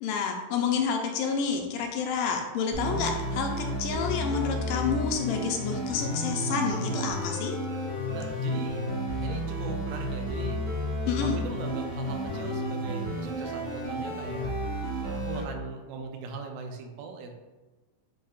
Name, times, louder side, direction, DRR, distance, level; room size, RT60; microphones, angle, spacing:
voice 1, 0.0-7.6 11.1-11.4, left 6 dB, 80° left, 3 dB, 2.0 m, -29 dB
sound 1, 2.7-15.4, equal, 65° right, 1.1 m, -32 dB
voice 2, 8.1-8.8 9.2-10.6 11.2-14.5 15.0-17.3, right 4 dB, 85° right, 3 dB, 2.3 m, -40 dB
7.8 x 2.8 x 2.4 m, 1.2 s
omnidirectional pair, 3.9 m